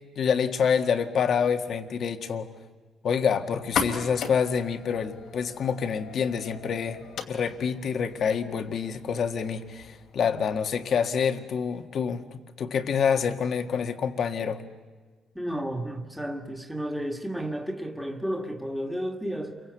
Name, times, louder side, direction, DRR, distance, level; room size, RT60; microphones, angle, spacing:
voice 1, 0.1-2.5 3.0-7.0 7.3-14.6, left 6 dB, 60° left, 1.7 m, -27 dB
sound 1, 3.6-11.0, left 6 dB, 75° left, 2.6 m, -38 dB
voice 2, 15.4-19.6, equal, ahead, 2.0 m, -32 dB
28.5 x 23.5 x 8.3 m
cardioid pair, 90°, 0 cm